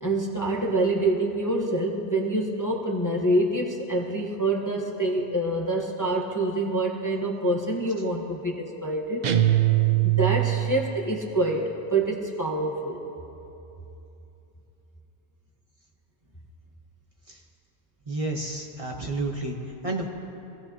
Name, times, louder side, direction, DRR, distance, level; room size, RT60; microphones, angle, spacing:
voice 1, 0.0-9.2 10.0-13.0, right 2 dB, 15° left, -1 dB, 1.1 m, -26 dB
sound 1, 9.2-10.9, right 14 dB, 50° right, 0.6 m, -22 dB
voice 2, 18.1-19.6 19.8-20.1, right 2 dB, 30° right, 0 dB, 1.2 m, -30 dB
24.5 x 16.5 x 2.9 m, 2.9 s
omnidirectional pair, 1.1 m